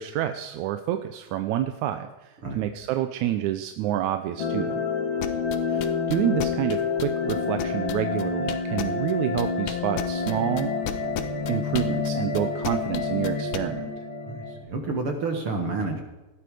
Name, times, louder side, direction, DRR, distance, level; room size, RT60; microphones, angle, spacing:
voice 1, 0.0-4.9 5.7-10.8 11.5-13.9, right 12 dB, 85° right, 8 dB, 2.2 m, -28 dB
sound 1, 4.4-14.6, left 4 dB, 45° left, 2.5 m, -28 dB
sound 2, 5.2-9.1 9.4-13.6, left 10 dB, 85° left, 2.4 m, -32 dB
voice 2, 14.3-16.0, right 3 dB, 50° right, 3 dB, 2.3 m, -29 dB
19.0 x 13.0 x 4.9 m, 1.1 s
omnidirectional pair, 3.3 m